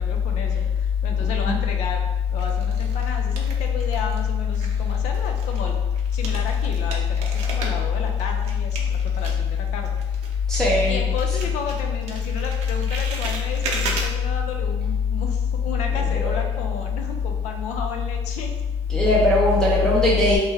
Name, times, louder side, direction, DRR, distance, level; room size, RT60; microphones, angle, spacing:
voice 1, 0.0-2.0 2.3-5.8 6.1-10.0 10.9-18.5 20.3-20.4, left 4 dB, 85° left, 3 dB, 0.5 m, -33 dB
sound 1, 1.2-1.8 2.4-4.3 4.5-10.9 11.2-14.1, right 3 dB, 70° right, 0.6 m, -35 dB
voice 2, 10.5-11.0 16.2-16.3 18.9-20.4, left 2 dB, 5° left, -6 dB, 0.4 m, -18 dB
3.2 x 2.2 x 3.3 m, 1.1 s
cardioid pair, 160°, 12 cm